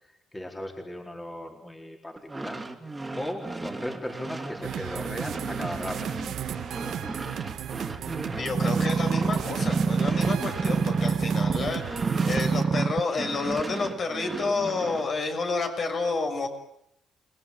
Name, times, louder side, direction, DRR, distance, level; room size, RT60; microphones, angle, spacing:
voice 1, 0.0-2.6 3.1-6.1 14.2-14.8, left 1 dB, 15° left, 2 dB, 4.3 m, -37 dB
sound 1, 2.2-12.8 13.1-15.1, right 2 dB, 15° right, 3.2 m, -36 dB
sound 2, 4.6-12.6, right 10 dB, 75° right, 1.9 m, -35 dB
voice 2, 8.2-16.5, left 3 dB, 50° left, 4 dB, 6.7 m, -30 dB
sound 3, 8.5-11.7 12.0-13.0 13.6-13.7, right 5 dB, 35° right, 0.9 m, -25 dB
29.5 x 19.5 x 8.8 m, 0.76 s
cardioid pair, 90°, 0 cm